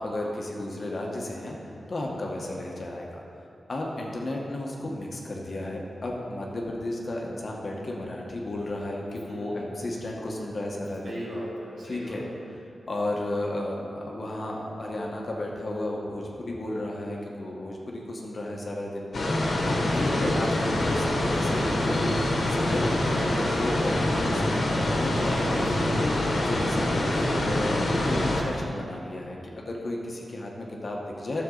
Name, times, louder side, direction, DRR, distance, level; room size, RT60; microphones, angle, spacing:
voice 1, 0.0-3.2 3.7-11.2 11.8-12.3 12.9-19.1 19.6-25.4 25.8-25.9 26.3-31.4, left 1 dB, 45° left, -1 dB, 1.3 m, -33 dB
voice 2, 9.3-9.9 11.0-12.2 24.8-26.2 26.7-27.1, equal, 60° right, -6 dB, 2.4 m, -39 dB
sound 1, 19.1-28.4, left 1 dB, 60° left, 1.4 m, -25 dB
12.5 x 7.0 x 4.0 m, 2.6 s
wide cardioid pair, 150°, 0 cm